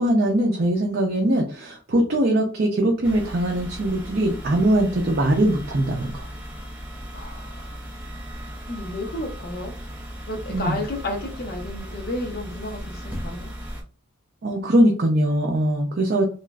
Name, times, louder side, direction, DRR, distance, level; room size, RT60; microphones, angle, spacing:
voice 1, 0.0-6.3 10.5-10.8 14.4-16.2, right 1 dB, 50° right, -1 dB, 0.5 m, -21 dB
sound 1, 3.0-13.8, equal, 5° right, 0.5 m, -37 dB
voice 2, 7.1-7.8 8.3-9.7 10.3-13.6, left 1 dB, 50° left, 3 dB, 0.6 m, -32 dB
3.0 x 2.4 x 2.3 m, 0.38 s
head